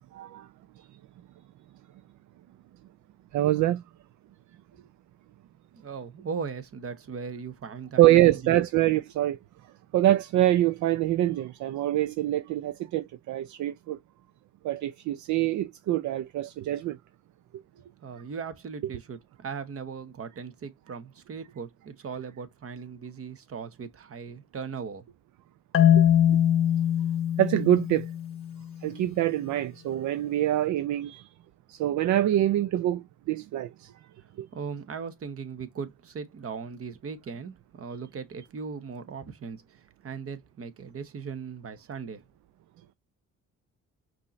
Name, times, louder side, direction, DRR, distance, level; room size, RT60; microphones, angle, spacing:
voice 1, 0.1-0.5 0.8-0.9 3.3-3.8 8.0-9.4 9.9-14.0 14.6-17.0 25.9-26.0 26.3-26.4 27.4-28.1 28.8-31.2 31.7-33.9 34.4-34.5, right 14 dB, 65° right, 0.5 m, -25 dB
voice 2, 5.7-8.6 18.0-25.0 34.5-42.2, right 5 dB, 45° right, 1.1 m, -38 dB
Marimba xylophone, 25.7-28.7, left 10 dB, 45° left, 0.7 m, -22 dB
5.3 x 2.9 x 3.1 m
supercardioid pair, 75°, 32 cm